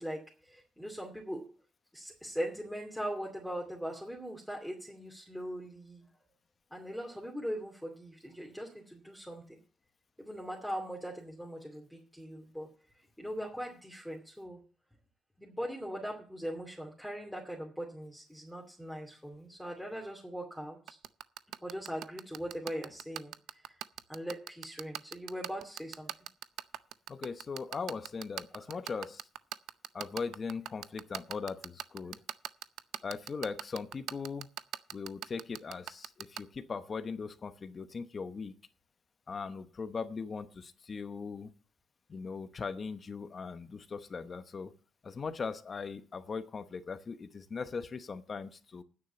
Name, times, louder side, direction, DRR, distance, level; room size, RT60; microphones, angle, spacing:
voice 1, 0.0-1.4 1.9-6.1 6.7-9.6 10.2-12.7 13.2-14.6 15.4-21.0 21.6-23.7 24.1-26.2 28.6-28.8, equal, ahead, -1 dB, 2.6 m, -40 dB
sound 1, 20.9-36.4, right 12 dB, 80° right, 0.5 m, -38 dB
voice 2, 27.1-29.2 29.9-32.2 33.0-34.5 34.9-38.5 39.3-41.5 42.1-44.7 45.0-48.8, left 5 dB, 40° left, 11 dB, 1.0 m, -39 dB
9.6 x 6.4 x 8.2 m, 0.40 s
cardioid pair, 90°, 0 cm